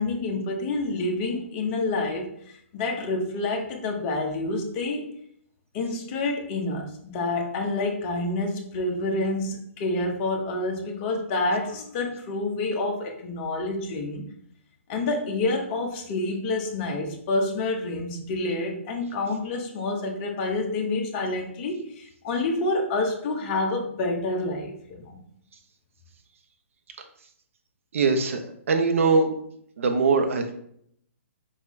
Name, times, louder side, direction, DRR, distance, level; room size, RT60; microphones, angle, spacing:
voice 1, 0.0-5.1 5.7-14.3 14.9-25.2, left 2 dB, 35° left, 2 dB, 1.0 m, -28 dB
voice 2, 27.9-29.3 29.8-30.5, right 4 dB, 70° right, 5 dB, 0.8 m, -22 dB
4.6 x 3.6 x 3.1 m, 0.68 s
hypercardioid pair, 145°, 8 cm